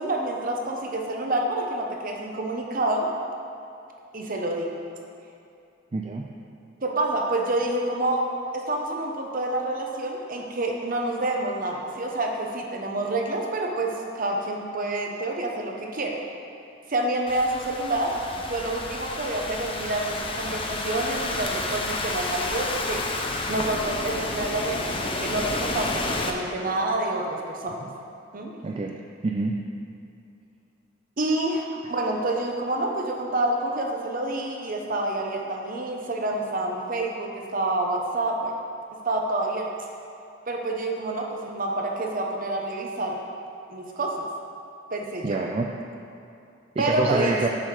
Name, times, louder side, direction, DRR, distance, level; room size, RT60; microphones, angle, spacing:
voice 1, 0.0-3.1 4.1-4.7 6.8-8.2 8.5-13.9 14.1-16.2 16.9-23.0 23.5-27.8 28.3-28.5 31.2-38.5 39.0-39.7 40.5-43.2 43.7-44.3 44.9-45.4 46.8-47.4, right 2 dB, 45° right, 0 dB, 0.9 m, -28 dB
voice 2, 5.9-6.3 27.8-27.9 28.6-29.0 29.2-29.6 45.2-45.7 46.8-47.5, right 3 dB, 30° right, 1 dB, 0.4 m, -26 dB
Thunderstorm / Rain, 17.3-26.3, left 2 dB, 30° left, 0.6 m, -30 dB
7.5 x 6.3 x 4.9 m, 2.6 s
head